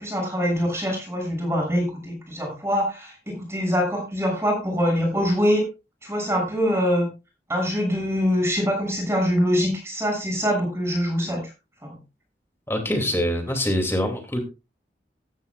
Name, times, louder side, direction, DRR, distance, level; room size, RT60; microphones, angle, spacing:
voice 1, 0.0-5.7 6.0-7.1 7.5-11.4 11.8-11.9, equal, 15° right, 1 dB, 6.6 m, -24 dB
voice 2, 12.7-14.4, left 1 dB, 15° left, 4 dB, 2.5 m, -24 dB
15.0 x 14.0 x 2.4 m, 0.29 s
head